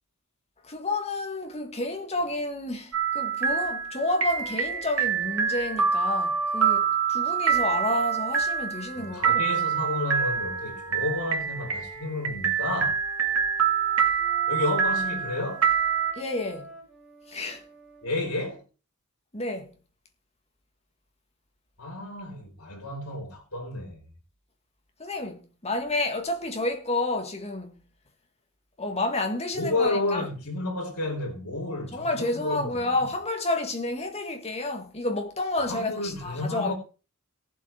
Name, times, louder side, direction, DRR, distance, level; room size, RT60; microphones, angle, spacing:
voice 1, 0.6-9.5 16.2-16.8 17.3-17.6 19.3-19.7 25.0-27.8 28.8-30.3 31.9-36.7, left 2 dB, 30° left, 1.9 m, -30 dB
sound 1, 2.9-16.1, right 7 dB, 70° right, 3.0 m, -26 dB
Wind instrument woodwind instrument, 4.3-6.8 7.4-12.1 12.8-18.1, right 2 dB, 5° right, 7.5 m, -47 dB
voice 2, 9.0-13.0 14.5-15.7 18.0-18.6 21.8-24.0 29.6-33.1 35.7-36.7, left 2 dB, 80° left, 3.5 m, -31 dB
17.5 x 7.5 x 4.3 m
head